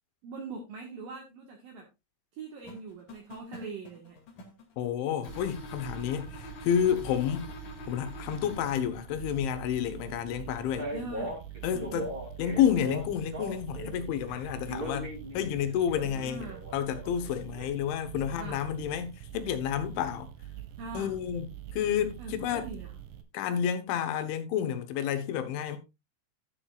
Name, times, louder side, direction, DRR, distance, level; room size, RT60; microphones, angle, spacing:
voice 1, 0.2-1.9 2.3-4.2 8.3-8.4 10.9-11.4 11.7-12.1 16.0-16.6 18.4-18.6 20.8-21.2 22.2-23.0, right 3 dB, 60° right, 2.8 m, -42 dB
sound 1, 2.6-4.7 5.2-8.6, left 4 dB, 50° left, 3.5 m, -46 dB
voice 2, 4.8-7.5 7.9-10.9 11.6-12.1 12.4-16.5 16.7-20.3 21.0-22.7 23.3-25.8, left 9 dB, 85° left, 3.7 m, -30 dB
sound 2, 5.3-23.2, right 11 dB, 85° right, 3.7 m, -45 dB
Male speech man speaking, 10.8-14.0 14.3-17.7, equal, 15° right, 1.9 m, -39 dB
12.0 x 10.0 x 2.4 m
omnidirectional pair, 5.3 m